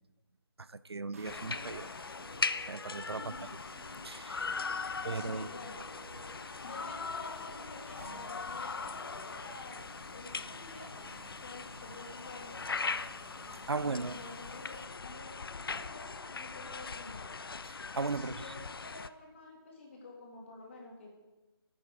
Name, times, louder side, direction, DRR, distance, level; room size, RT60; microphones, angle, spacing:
voice 1, 0.6-1.9 2.7-3.3 4.0-4.5 5.0-5.5 13.7-14.2 17.7-18.5, right 4 dB, 85° right, 0.5 m, -37 dB
sound 1, 1.1-14.8, right 3 dB, 35° right, 1.1 m, -54 dB
sound 2, 1.2-19.1, left 4 dB, 65° left, 0.4 m, -40 dB
voice 2, 4.8-5.8 6.6-9.8 10.1-11.0 11.4-13.0 13.8-17.3 18.1-21.1, left 3 dB, 30° left, 2.1 m, -50 dB
9.6 x 9.4 x 3.5 m
figure-of-eight pair, 160°, 13 cm